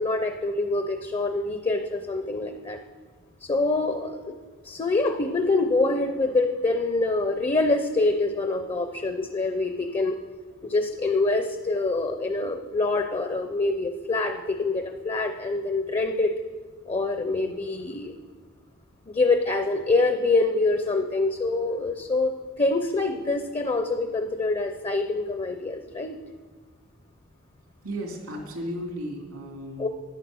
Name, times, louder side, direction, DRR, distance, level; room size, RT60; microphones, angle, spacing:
voice 1, 0.0-2.8 3.4-4.3 4.6-10.2 10.6-16.3 16.9-18.1 19.1-22.3 22.6-26.2 29.8-29.9, left 2 dB, 25° left, 6 dB, 0.5 m, -25 dB
voice 2, 27.8-29.9, equal, 90° right, 1 dB, 2.7 m, -34 dB
12.0 x 9.8 x 6.2 m, 1.5 s
head